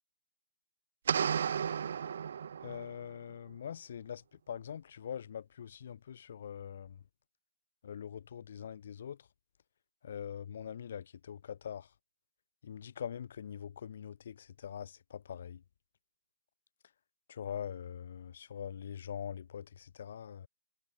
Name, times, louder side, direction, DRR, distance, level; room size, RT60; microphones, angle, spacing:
sound 1, 1.1-3.0, right 7 dB, 55° right, 2.0 m, -33 dB
voice 1, 2.6-4.2 4.5-7.0 7.8-9.2 10.0-11.9 12.6-15.6 17.3-20.5, left 8 dB, 50° left, 3.1 m, -43 dB
hypercardioid pair, 165°, 0 cm